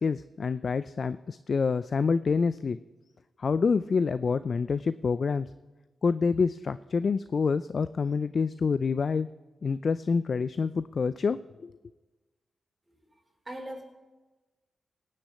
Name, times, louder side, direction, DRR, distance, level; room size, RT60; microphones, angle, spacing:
voice 1, 0.0-2.8 3.4-5.5 6.0-9.3 9.6-11.4 11.6-11.8, left 5 dB, 55° left, 14 dB, 0.4 m, -27 dB
voice 2, 12.9-13.8, right 1 dB, 20° right, 0 dB, 4.6 m, -42 dB
17.5 x 6.5 x 8.3 m, 1.2 s
cardioid pair, 65°, 0 cm